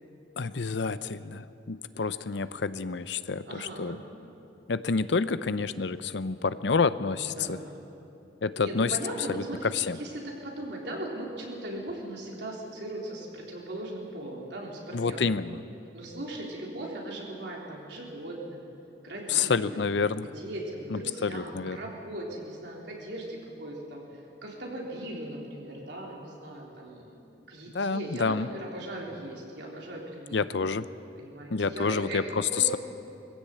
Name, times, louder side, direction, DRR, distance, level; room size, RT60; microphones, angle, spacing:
voice 1, 0.4-4.0 4.7-7.6 8.4-9.0 9.3-9.4 9.7-10.0 14.9-15.6 19.3-20.3 20.9-21.8 27.7-28.5 30.3-30.9 31.5-32.8, left 5 dB, 70° left, 14 dB, 0.6 m, -28 dB
voice 2, 3.4-4.0 7.3-7.8 8.6-15.2 15.9-18.6 19.0-19.8 20.2-27.2 27.5-30.5 31.2-32.8, right 1 dB, 70° right, -2 dB, 3.9 m, -39 dB
21.0 x 15.5 x 8.6 m, 2.7 s
head